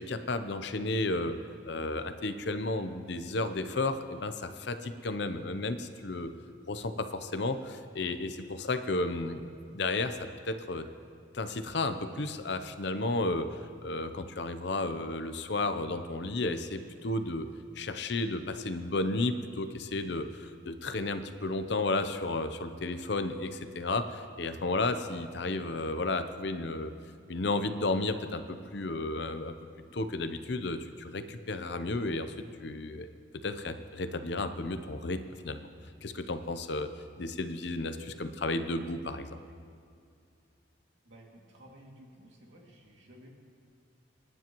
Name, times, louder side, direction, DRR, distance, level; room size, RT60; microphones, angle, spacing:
voice 1, 0.0-1.4 1.7-6.3 6.7-10.9 11.3-17.5 17.8-26.9 27.3-29.5 29.9-32.3 32.6-33.1 33.4-35.7 36.0-36.9 37.2-39.4, left 2 dB, 55° left, 10 dB, 0.7 m, -33 dB
voice 2, 41.0-43.3, equal, 70° right, -1 dB, 2.4 m, -54 dB
29.0 x 10.0 x 3.0 m, 2.3 s
head